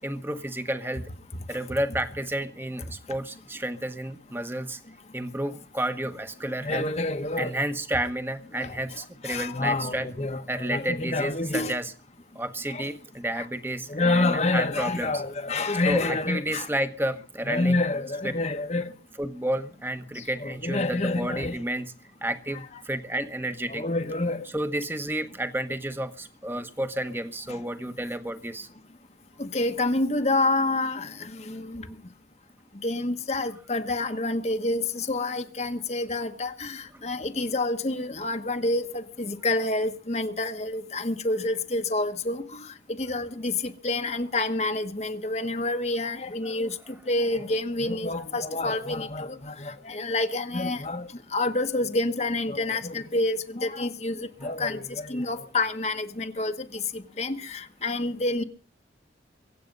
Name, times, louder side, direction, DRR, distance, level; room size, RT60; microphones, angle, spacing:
voice 1, 0.0-1.0 1.5-4.8 5.1-6.9 7.4-10.1 10.5-11.9 12.3-15.2 15.9-17.8 19.2-21.9 22.2-23.9 24.5-28.7 54.4-54.5, right 1 dB, 10° right, 1.2 m, -31 dB
voice 2, 6.6-7.6 8.6-11.7 12.7-12.9 13.4-13.5 13.9-16.7 17.5-18.9 20.2-21.6 23.7-24.5 27.5-27.6 29.4-31.9 32.8-58.4, left 2 dB, 35° left, 1.2 m, -28 dB
23.5 x 8.5 x 5.3 m
head